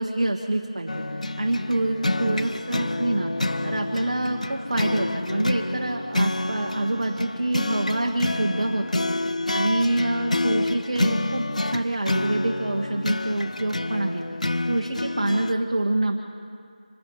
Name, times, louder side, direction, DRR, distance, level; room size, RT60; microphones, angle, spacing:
voice 1, 0.0-3.3 3.6-9.0 9.5-11.4 11.7-14.3 14.7-16.2, right 1 dB, 50° right, 1 dB, 1.4 m, -26 dB
sound 1, 0.9-15.5, left 2 dB, 70° left, 0.8 m, -28 dB
26.0 x 12.0 x 9.5 m, 2.3 s
figure-of-eight pair, 170°, 4 cm